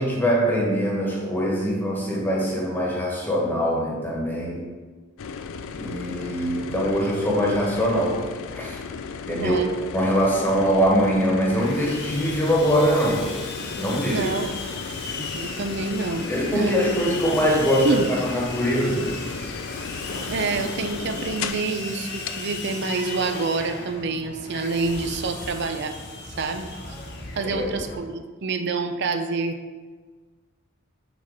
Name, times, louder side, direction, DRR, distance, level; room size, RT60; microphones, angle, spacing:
voice 1, 0.0-4.7 5.7-8.3 8.5-8.8 9.3-9.6 9.9-13.3 13.8-14.3 16.3-19.1 27.4-27.7, equal, 10° left, -3 dB, 1.4 m, -23 dB
sound 1, 5.2-21.7 22.3-22.4, left 5 dB, 75° left, 0.4 m, -35 dB
voice 2, 9.4-9.7 14.0-14.6 15.1-16.3 16.5-16.9 17.8-18.1 20.3-25.9 26.4-26.7 27.4-29.6, right 3 dB, 60° right, 7 dB, 0.6 m, -27 dB
Sawing, 11.5-28.0, left 3 dB, 55° left, 1.1 m, -36 dB
6.0 x 4.4 x 4.8 m, 1.4 s
head